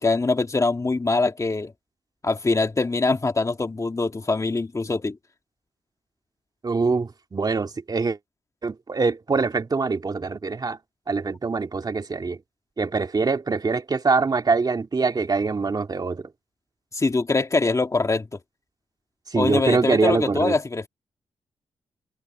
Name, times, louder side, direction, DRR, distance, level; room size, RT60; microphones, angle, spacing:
voice 1, 0.0-1.7 2.2-5.2 16.9-18.3 19.3-20.9, left 3 dB, 30° left, 2.2 m, -23 dB
voice 2, 6.6-8.2 8.6-10.8 11.1-12.4 12.8-16.2 19.3-20.6, right 4 dB, 40° right, 2.4 m, -24 dB
cardioid pair, 60°, 10 cm